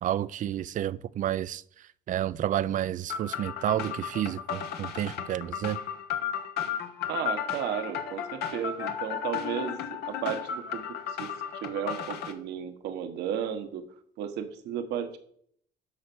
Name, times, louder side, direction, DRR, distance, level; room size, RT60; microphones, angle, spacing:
voice 1, 0.0-5.8, right 11 dB, 50° right, 0.4 m, -30 dB
sound 1, 3.1-12.3, left 8 dB, 75° left, 1.3 m, -34 dB
voice 2, 7.1-9.8 10.1-10.8 11.2-11.3 11.6-13.8 14.2-15.2, right 9 dB, 80° right, 1.3 m, -33 dB
12.0 x 4.5 x 6.1 m
cardioid pair, 110°, 17 cm